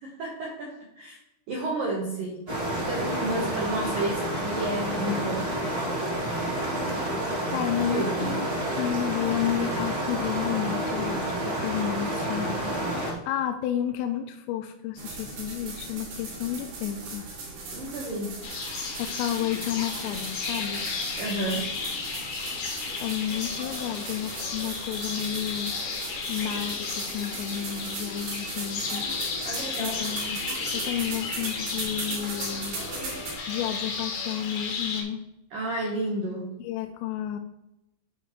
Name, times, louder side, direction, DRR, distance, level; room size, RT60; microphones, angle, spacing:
voice 1, 0.0-1.2 1.5-2.4 2.7-5.5 7.9-8.4 17.7-18.4 21.2-21.7 29.4-30.0 35.5-36.6, right 1 dB, 80° right, -2 dB, 2.0 m, -31 dB
sound 1, 2.5-13.1, right 1 dB, 30° right, 1.7 m, -29 dB
voice 2, 7.5-17.3 19.0-20.8 23.0-25.8 26.3-29.1 29.4-30.5 30.7-32.8 33.5-35.2 36.6-37.4, left 10 dB, 90° left, 6 dB, 3.2 m, -31 dB
sound 2, 15.0-33.4, right 3 dB, 55° right, 3.7 m, -38 dB
sound 3, 18.4-35.0, left 5 dB, 70° left, 2.0 m, -34 dB
12.0 x 4.5 x 3.1 m, 0.88 s
omnidirectional pair, 5.8 m